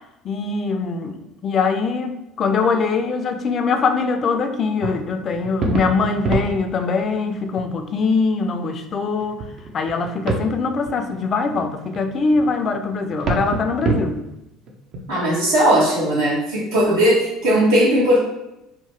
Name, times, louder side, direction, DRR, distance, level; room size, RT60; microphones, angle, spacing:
voice 1, 0.2-9.4 9.7-14.2, left 4 dB, 45° left, 7 dB, 0.3 m, -22 dB
sound 1, 4.8-7.1 7.4-7.6 8.2-8.3 9.0-10.5 10.9-15.0, right 3 dB, 50° right, 0.5 m, -26 dB
voice 2, 15.1-18.2, equal, 80° right, -5 dB, 1.1 m, -17 dB
2.8 x 2.1 x 3.0 m, 0.88 s
hypercardioid pair, 70°, 0 cm